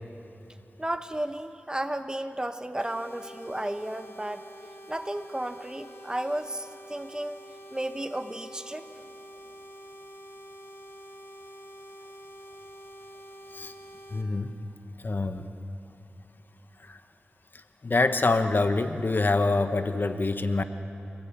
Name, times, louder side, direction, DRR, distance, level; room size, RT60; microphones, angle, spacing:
voice 1, 0.8-4.4 4.9-7.4 7.7-8.9, right 1 dB, 20° right, 9 dB, 1.1 m, -33 dB
sound 1, 2.8-14.2, equal, 65° left, 2.2 m, -47 dB
voice 2, 14.1-14.5 15.0-15.5 16.8-17.0 17.5-20.6, left 3 dB, 50° left, 8 dB, 1.2 m, -26 dB
26.0 x 19.5 x 8.7 m, 2.9 s
cardioid pair, 55°, 4 cm